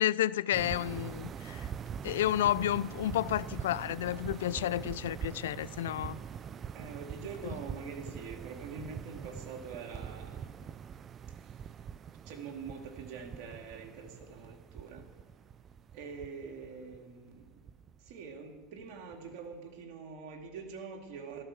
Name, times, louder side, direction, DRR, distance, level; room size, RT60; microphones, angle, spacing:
voice 1, 0.0-1.7 2.0-6.2, left 12 dB, 85° left, 0.3 m, -31 dB
sound 1, 0.5-19.5, right 8 dB, 35° right, 0.4 m, -44 dB
voice 2, 6.7-10.7 11.3-11.6 12.2-15.1 15.9-17.7 18.0-21.4, right 5 dB, 65° right, 2.3 m, -45 dB
13.5 x 12.0 x 6.3 m
supercardioid pair, 105°, 0 cm